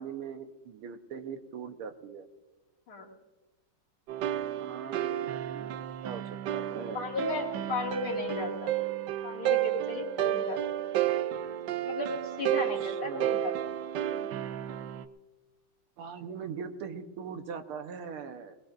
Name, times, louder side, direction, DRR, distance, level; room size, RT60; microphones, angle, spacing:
voice 1, 0.0-2.3 4.6-5.7 6.0-7.1 12.8-13.5 16.0-18.6, right 6 dB, 85° right, 7 dB, 1.9 m, -41 dB
sound 1, 4.1-15.0, right 11 dB, 70° right, 1.1 m, -32 dB
voice 2, 6.9-8.7 9.2-10.9 11.8-13.7 14.1-14.3, left 3 dB, 75° left, 0 dB, 3.1 m, -35 dB
21.0 x 19.5 x 2.6 m, 1.2 s
omnidirectional pair, 2.4 m